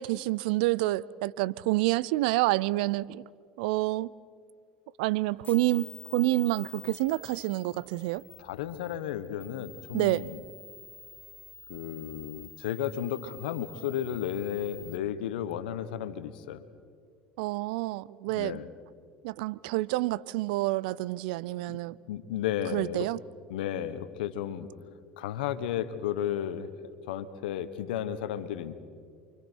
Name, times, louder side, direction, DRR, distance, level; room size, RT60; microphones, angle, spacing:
voice 1, 0.0-3.3 3.6-4.1 5.0-8.2 9.9-10.3 17.4-18.6 19.2-21.9 22.7-23.2, right 19 dB, 75° right, 0.5 m, -28 dB
sound 1, 5.4-15.0, left 5 dB, 35° left, 1.2 m, -49 dB
voice 2, 8.4-10.4 11.7-16.6 18.3-18.7 21.7-21.8 22.1-23.1 23.5-24.7 25.2-26.7 27.1-28.7, left 10 dB, 80° left, 1.2 m, -33 dB
29.0 x 25.0 x 4.6 m
hypercardioid pair, 75°, 5 cm